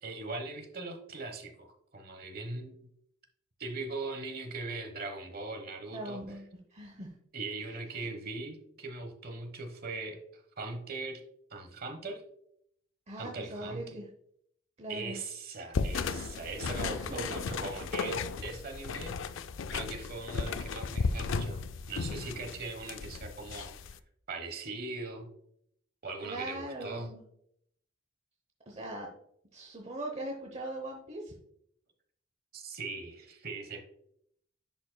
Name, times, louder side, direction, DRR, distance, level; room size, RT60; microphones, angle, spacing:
voice 1, 0.0-2.9 3.6-6.2 7.3-11.2 11.5-12.2 13.2-13.8 14.9-19.2 19.7-21.6 21.9-23.7 24.3-25.3 26.0-27.1 32.5-33.8, right 3 dB, 45° right, 6 dB, 1.1 m, -40 dB
voice 2, 5.9-7.1 13.1-14.1 14.8-15.2 16.8-17.4 26.2-27.2 28.7-29.1 29.5-31.3, right 1 dB, 30° right, 1 dB, 0.8 m, -40 dB
sound 1, 15.7-24.0, left 4 dB, 65° left, 0.4 m, -35 dB
10.5 x 5.2 x 2.2 m, 0.71 s
head